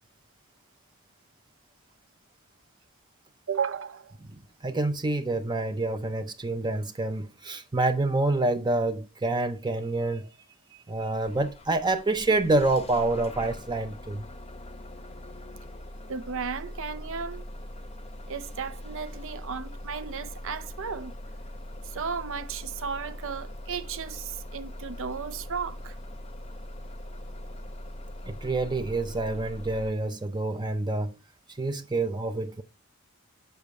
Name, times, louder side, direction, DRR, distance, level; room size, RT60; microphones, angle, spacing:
voice 1, 3.5-4.2 16.1-17.4 18.3-21.1 21.8-26.0, right 6 dB, 65° right, 0.7 m, -34 dB
voice 2, 4.6-10.3 10.7-14.2 28.3-31.1 31.5-32.6, right 2 dB, 20° right, 0.6 m, -27 dB
Bus / Engine starting, 11.2-29.9, left 1 dB, 30° left, 0.8 m, -41 dB
8.2 x 6.7 x 3.2 m
head